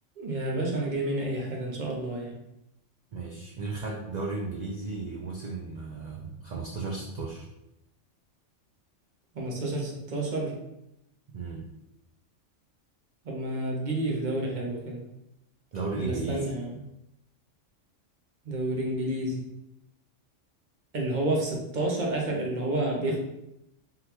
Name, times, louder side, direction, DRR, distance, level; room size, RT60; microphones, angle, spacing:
voice 1, 0.2-2.4 9.3-10.6 13.2-15.0 16.0-16.8 18.4-19.4 20.9-23.2, right 1 dB, 45° right, -1 dB, 0.7 m, -30 dB
voice 2, 3.1-7.5 11.3-11.7 15.7-16.4, right 3 dB, 85° right, -2 dB, 0.3 m, -34 dB
3.7 x 2.2 x 2.9 m, 0.86 s
omnidirectional pair, 1.3 m